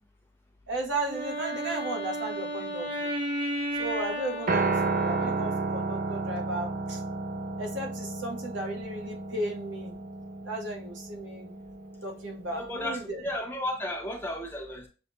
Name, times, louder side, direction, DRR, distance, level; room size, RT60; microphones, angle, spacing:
voice 1, 0.7-3.1 3.8-7.0 7.6-10.0 10.4-11.5 12.0-13.2, right 2 dB, 80° right, 1 dB, 1.1 m, -35 dB
Wind instrument woodwind instrument, 1.0-5.8, equal, 30° right, 1.0 m, -34 dB
Piano, 4.5-12.7, right 3 dB, 45° right, 0.5 m, -32 dB
voice 2, 12.5-14.9, left 1 dB, 10° left, 2 dB, 0.7 m, -33 dB
6.5 x 2.4 x 2.7 m, 0.34 s
head